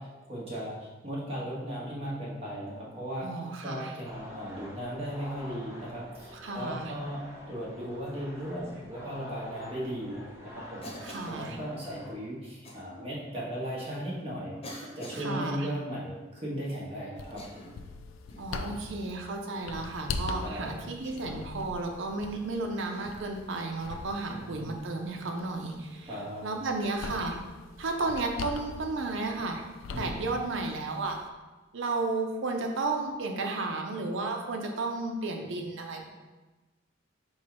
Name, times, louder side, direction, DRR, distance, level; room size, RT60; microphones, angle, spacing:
voice 1, 0.0-3.3 3.6-10.9 11.2-14.6 14.9-17.6 20.4-20.7 24.3-24.7 26.1-26.5 29.9-30.2, equal, 30° right, -6 dB, 1.1 m, -37 dB
voice 2, 3.2-3.9 6.4-6.9 11.0-11.6 15.1-15.7 18.4-26.1 26.4-27.4 27.8-29.6 30.0-31.2 31.7-36.1, right 3 dB, 65° right, 3 dB, 0.6 m, -33 dB
sound 1, 4.0-12.1, left 1 dB, 15° right, 0.7 m, -47 dB
Cough, 10.8-11.4 12.6-12.8 13.7-13.8 14.6-15.3 17.2-17.9 18.3-18.6 19.7-20.0 21.0-21.4 22.9-23.1 25.4-25.5 27.2-27.4, equal, 30° left, 0.7 m, -46 dB
sound 2, 17.2-31.3, left 4 dB, 80° left, 0.3 m, -42 dB
4.4 x 2.2 x 4.4 m, 1.2 s
head